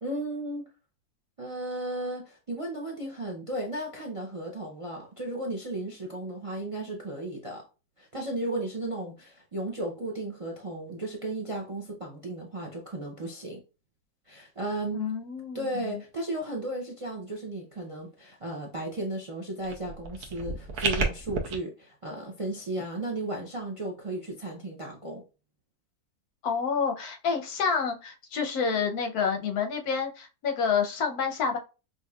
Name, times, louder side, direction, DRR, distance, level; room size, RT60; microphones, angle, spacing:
voice 1, 0.0-0.7 1.4-7.6 8.0-13.6 14.3-15.0 15.5-25.2, right 1 dB, 45° right, 0.4 m, -35 dB
voice 2, 14.9-16.0 26.4-31.6, left 6 dB, 90° left, 1.2 m, -28 dB
sound 1, 19.6-21.6, right 4 dB, 85° right, 1.3 m, -31 dB
5.4 x 2.6 x 2.3 m
omnidirectional pair, 1.6 m